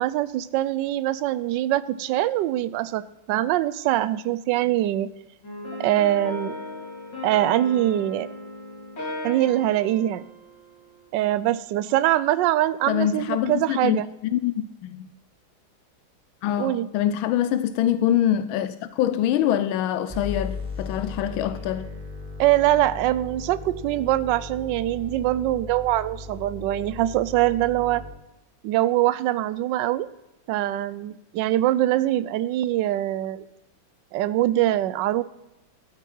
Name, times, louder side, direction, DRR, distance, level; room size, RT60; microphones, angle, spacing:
voice 1, 0.0-3.0 3.3-5.1 5.8-6.6 7.2-8.3 9.2-10.2 11.1-14.1 16.6-16.9 22.4-28.0 28.6-30.1 30.5-33.4 34.1-35.2, right 14 dB, 75° right, 1.1 m, -23 dB
sound 1, 5.4-11.1, left 1 dB, 60° left, 4.8 m, -36 dB
voice 2, 12.9-15.1 16.4-21.9, left 11 dB, 85° left, 1.4 m, -24 dB
sound 2, 20.1-28.1, left 3 dB, 5° right, 5.5 m, -37 dB
13.0 x 8.2 x 5.5 m
omnidirectional pair, 2.2 m